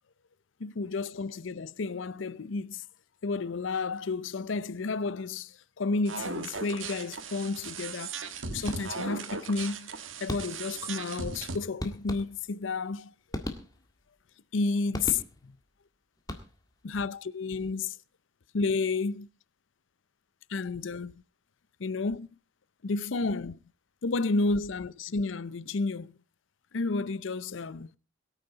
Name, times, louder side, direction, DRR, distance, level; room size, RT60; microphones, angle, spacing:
voice 1, 0.6-2.8 3.2-9.9 10.2-13.1 14.5-15.5 16.8-18.0 18.5-19.3 20.5-21.2 21.8-22.3 22.8-23.6 24.0-26.2 26.7-27.9, left 3 dB, 75° left, 0.6 m, -31 dB
sound 1, 6.0-11.6, right 4 dB, 90° right, 1.5 m, -38 dB
sound 2, 8.7-9.2 10.3-10.8 11.8-12.7 13.3-14.1 14.9-15.6 16.2-16.8, left 1 dB, 20° left, 1.7 m, -38 dB
22.5 x 9.2 x 4.0 m
head